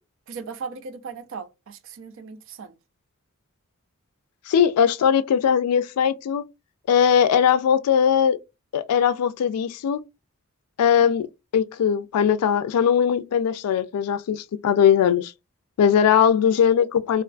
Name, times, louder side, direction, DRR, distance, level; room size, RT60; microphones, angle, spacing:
voice 1, 0.3-2.8, right 5 dB, 60° right, 0.4 m, -37 dB
voice 2, 4.5-6.4 6.9-8.4 8.7-10.0 10.8-11.3 11.5-15.3 15.8-17.2, left 8 dB, 85° left, 0.3 m, -20 dB
2.4 x 2.2 x 2.4 m
head